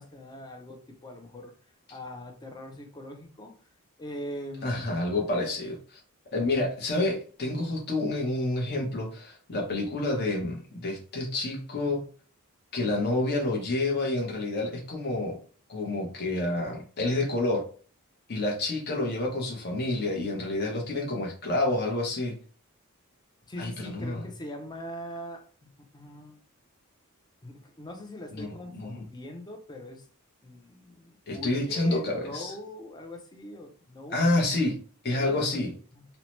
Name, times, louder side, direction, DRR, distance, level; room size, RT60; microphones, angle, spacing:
voice 1, 0.0-1.5 1.9-3.5 4.0-4.9 23.5-25.4 25.9-26.4 27.4-30.0 30.4-34.2 35.1-35.5 35.9-36.0, equal, 20° left, 0.5 m, -42 dB
voice 2, 4.6-6.0 6.3-12.0 12.7-15.4 15.7-17.7 18.3-22.3 23.6-24.2 28.3-29.0 31.3-32.5 34.1-34.8 35.0-35.7, left 2 dB, 50° left, 0.8 m, -28 dB
2.7 x 2.1 x 3.0 m
head